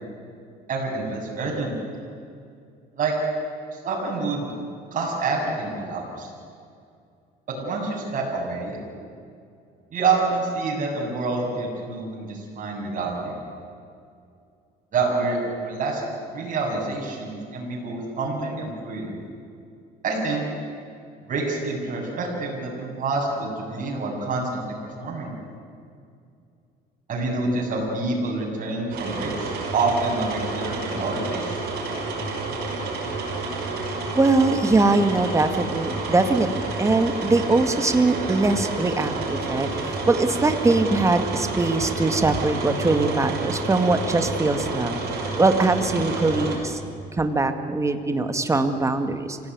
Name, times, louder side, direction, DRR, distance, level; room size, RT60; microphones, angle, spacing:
voice 1, 0.7-1.7 3.0-3.1 3.8-4.5 4.9-6.3 7.5-8.8 9.9-13.4 14.9-16.0 16.3-19.1 20.0-20.5 21.3-25.3 27.1-31.5, right 3 dB, 50° right, -2 dB, 7.6 m, -27 dB
sound 1, 28.9-46.6, right 3 dB, 70° right, 6.2 m, -29 dB
voice 2, 34.1-45.0 45.4-46.8 47.1-49.4, right 3 dB, 15° right, 8 dB, 1.9 m, -22 dB
26.0 x 17.0 x 9.6 m, 2.4 s
cardioid pair, 110°, 17 cm